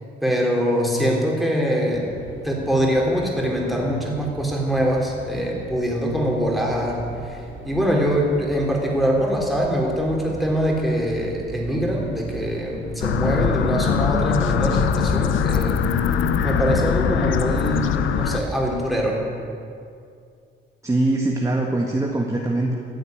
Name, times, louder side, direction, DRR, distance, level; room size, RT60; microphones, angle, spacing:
voice 1, 0.2-2.2 2.4-7.4 7.6-15.8 16.4-19.3, equal, ahead, -2 dB, 3.8 m, -23 dB
sound 1, 1.9-18.8, right 3 dB, 75° right, 2.7 m, -38 dB
sound 2, 13.0-18.4, left 8 dB, 75° left, 0.8 m, -22 dB
voice 2, 20.8-22.7, right 2 dB, 15° right, 0 dB, 1.6 m, -22 dB
14.5 x 8.3 x 9.2 m, 2.4 s
cardioid pair, 90°, 20 cm